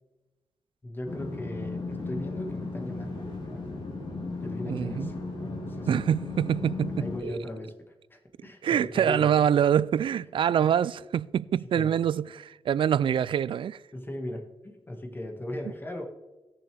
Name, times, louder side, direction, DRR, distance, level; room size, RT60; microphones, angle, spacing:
voice 1, 0.8-3.7 4.4-6.0 7.0-9.5 10.4-10.5 11.7-12.0 13.9-16.0, left 1 dB, 20° left, 1.8 m, -38 dB
sound 1, 1.1-7.2, left 3 dB, 50° left, 3.2 m, -36 dB
voice 2, 4.7-5.1 5.9-7.4 8.6-13.8, right 9 dB, 60° right, 0.3 m, -25 dB
18.5 x 6.9 x 3.4 m
cardioid pair, 85°, 10 cm